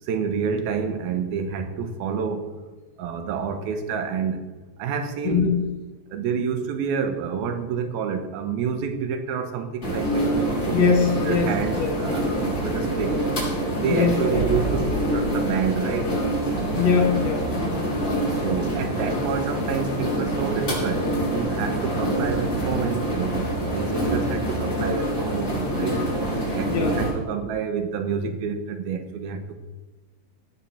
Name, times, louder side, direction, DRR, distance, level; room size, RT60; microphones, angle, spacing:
voice 1, 0.0-2.5 3.0-4.5 4.8-5.5 6.1-11.0 11.2-12.3 12.6-13.2 13.7-16.2 18.3-23.4 23.7-26.0 26.5-29.6, right 6 dB, 90° right, 7 dB, 3.1 m, -28 dB
voice 2, 5.2-5.6 10.7-11.5 11.8-11.9 13.9-14.5 16.8-17.9 26.7-27.0, left 5 dB, 65° left, 4 dB, 1.8 m, -22 dB
sound 1, 9.8-27.1, right 1 dB, 25° left, 6.3 m, -25 dB
18.5 x 7.6 x 7.3 m, 1.2 s
omnidirectional pair, 4.2 m